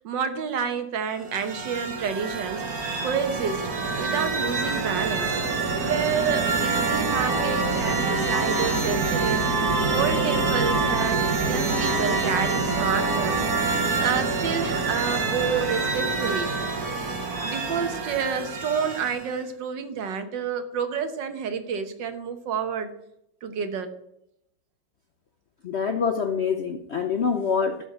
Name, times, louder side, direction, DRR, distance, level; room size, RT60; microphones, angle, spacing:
voice 1, 0.0-3.7 4.0-5.3 5.8-13.5 14.0-16.5 17.4-22.9 23.4-23.9, right 6 dB, 75° right, 8 dB, 1.8 m, -29 dB
sound 1, 1.2-19.4, right 3 dB, 55° right, 1.8 m, -26 dB
voice 2, 25.6-27.9, left 6 dB, 60° left, 7 dB, 0.6 m, -25 dB
13.0 x 4.5 x 8.3 m, 0.77 s
omnidirectional pair, 2.0 m